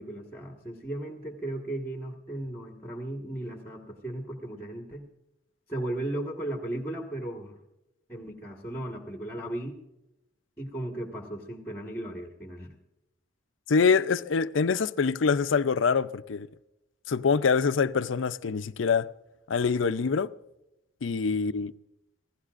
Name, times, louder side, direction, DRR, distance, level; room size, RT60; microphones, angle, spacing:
voice 1, 0.0-5.1 5.7-7.6 8.1-9.8 10.6-12.7, right 1 dB, 10° left, 1.5 m, -36 dB
voice 2, 13.7-16.5 17.1-19.1 19.5-20.3 21.0-21.7, left 5 dB, 90° left, 0.5 m, -25 dB
28.0 x 16.0 x 2.5 m
head